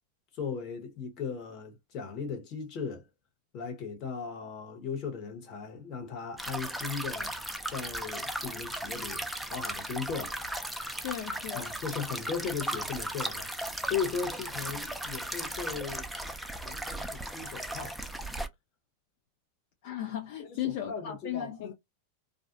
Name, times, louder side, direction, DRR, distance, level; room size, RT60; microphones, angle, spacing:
voice 1, 0.3-3.1 3.5-7.4 7.7-10.4 11.5-13.5 13.8-16.1 16.6-18.0 20.4-21.7, left 6 dB, 45° left, 1.1 m, -37 dB
sound 1, 6.4-18.5, right 1 dB, ahead, 0.4 m, -36 dB
voice 2, 11.0-11.7 19.8-21.7, left 11 dB, 65° left, 0.5 m, -36 dB
2.4 x 2.1 x 2.5 m
hypercardioid pair, 115°, 0 cm